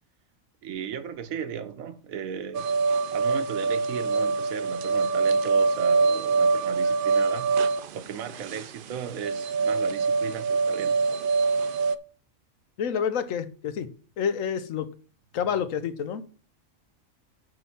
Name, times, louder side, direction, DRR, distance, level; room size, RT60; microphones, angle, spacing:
voice 1, 0.6-2.7 3.1-7.5 7.9-11.0, right 8 dB, 90° right, 1.3 m, -36 dB
sound 1, 2.5-12.0, right 4 dB, 65° right, 0.5 m, -24 dB
voice 2, 12.8-13.9 14.2-14.9 15.3-16.2, left 7 dB, 75° left, 1.2 m, -28 dB
9.6 x 3.9 x 5.5 m
omnidirectional pair, 1.4 m